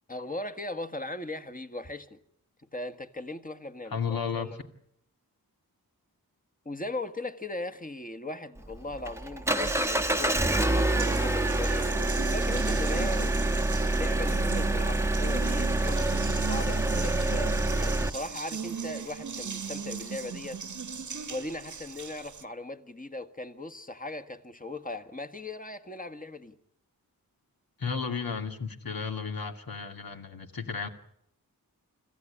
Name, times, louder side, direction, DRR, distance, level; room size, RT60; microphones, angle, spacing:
voice 1, 0.1-2.2 2.7-4.6 6.6-11.9 12.3-13.5 13.9-20.6 21.3-26.6, left 2 dB, 20° left, 1.6 m, -38 dB
voice 2, 3.9-4.5 27.8-30.9, left 6 dB, 65° left, 2.4 m, -33 dB
Engine, 8.6-18.1, right 2 dB, 5° right, 1.1 m, -27 dB
Water tap faucet, 9.6-22.4, right 6 dB, 55° right, 1.2 m, -38 dB
26.5 x 14.5 x 9.9 m
wide cardioid pair, 60°, 37 cm